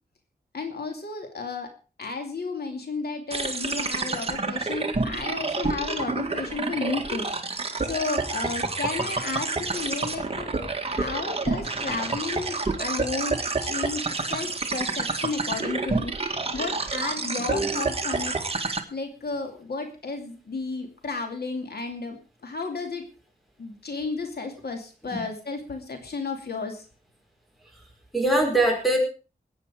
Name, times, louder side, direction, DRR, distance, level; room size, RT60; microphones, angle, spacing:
voice 1, 0.5-1.7 2.0-7.3 7.8-10.5 10.9-16.1 16.5-18.3 18.9-22.2 22.4-23.0 23.6-26.9, left 4 dB, 70° left, 4 dB, 2.6 m, -33 dB
sound 1, 3.3-18.8, right 3 dB, 35° right, 1.9 m, -29 dB
voice 2, 28.1-29.0, right 2 dB, ahead, 0 dB, 5.4 m, -23 dB
21.0 x 9.1 x 4.9 m, 0.36 s
wide cardioid pair, 125°, 17 cm